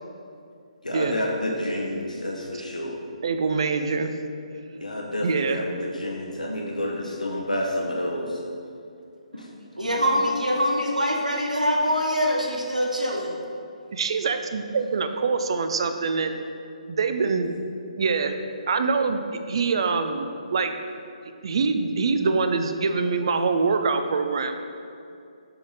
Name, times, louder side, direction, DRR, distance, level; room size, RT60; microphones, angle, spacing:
voice 1, 0.8-2.9 4.8-8.3, left 1 dB, 80° left, -1 dB, 1.0 m, -29 dB
voice 2, 3.2-4.1 5.2-5.6 13.9-16.4 16.9-17.5 18.0-18.4 18.7-20.7 21.4-24.6, right 4 dB, 45° right, 8 dB, 0.4 m, -24 dB
voice 3, 9.8-13.3, equal, 80° right, 0 dB, 1.0 m, -24 dB
7.6 x 4.1 x 4.8 m, 2.5 s
figure-of-eight pair, 140°, 4 cm